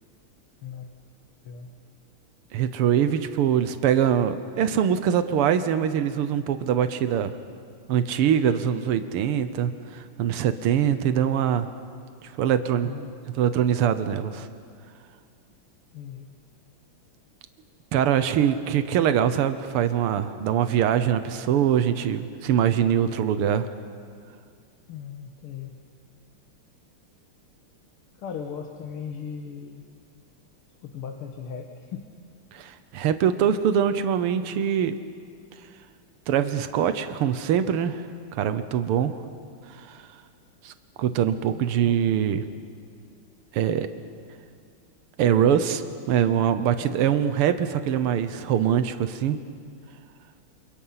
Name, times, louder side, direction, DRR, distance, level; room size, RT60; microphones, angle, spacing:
voice 1, 2.5-7.3 7.9-11.7 12.4-12.9 13.3-14.5 17.9-23.7 32.5-34.9 36.3-38.0 38.3-39.2 39.7-40.0 40.6-40.7 41.0-42.4 43.5-43.9 45.2-49.4, right 9 dB, 90° right, 10 dB, 1.9 m, -23 dB
voice 2, 12.8-13.1 15.9-16.3 24.9-25.8 28.2-29.9 30.8-32.1 41.5-42.0, left 7 dB, 85° left, 4 dB, 2.3 m, -38 dB
28.5 x 27.5 x 5.8 m, 2.2 s
omnidirectional pair, 2.4 m